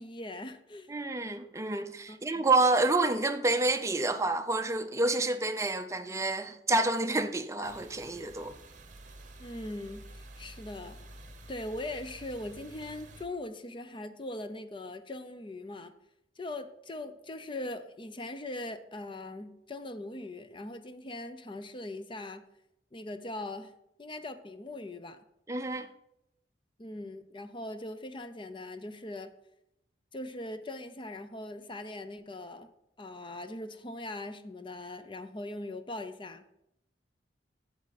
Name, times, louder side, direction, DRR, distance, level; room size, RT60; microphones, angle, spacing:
voice 1, 0.0-0.9 2.1-2.5 9.4-11.0 11.5-15.9 16.4-22.4 22.9-23.7 24.0-25.2 26.8-29.3 30.1-32.7 33.0-36.4, left 1 dB, 30° left, 0.7 m, -40 dB
voice 2, 0.9-8.5 25.5-25.9, right 2 dB, 15° right, 0.6 m, -28 dB
sound 1, 7.6-13.2, right 1 dB, 45° right, 1.1 m, -50 dB
8.6 x 7.8 x 4.1 m
head